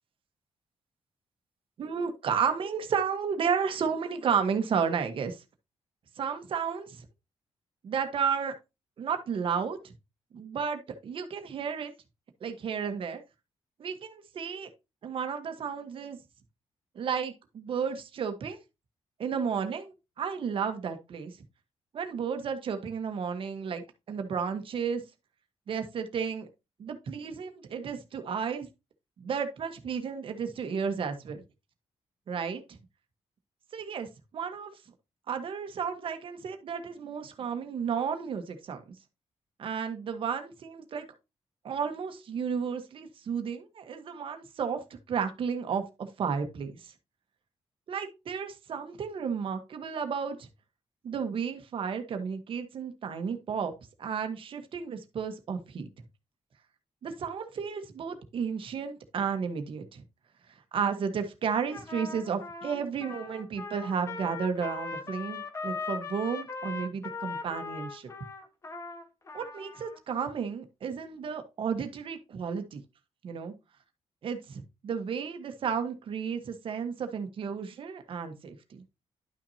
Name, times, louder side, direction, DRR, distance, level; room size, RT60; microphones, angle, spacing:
voice 1, 1.8-5.4 6.2-7.0 7.8-8.5 9.0-9.9 10.3-11.9 12.4-13.2 13.8-14.7 15.0-16.2 16.9-18.6 19.2-21.4 21.9-25.0 25.7-26.5 26.8-28.7 29.2-31.4 32.3-32.8 33.7-34.1 34.3-34.7 35.3-38.8 39.6-41.1 41.6-44.8 45.1-46.9 47.9-50.5 51.0-53.7 54.0-55.9 57.0-60.0 60.7-68.1 69.3-72.8 73.2-73.5 74.2-78.8, right 6 dB, 55° right, 1.3 m, -32 dB
Trumpet, 61.7-70.0, left 4 dB, 25° left, 1.1 m, -39 dB
11.5 x 5.9 x 2.8 m
wide cardioid pair, 170°, 11 cm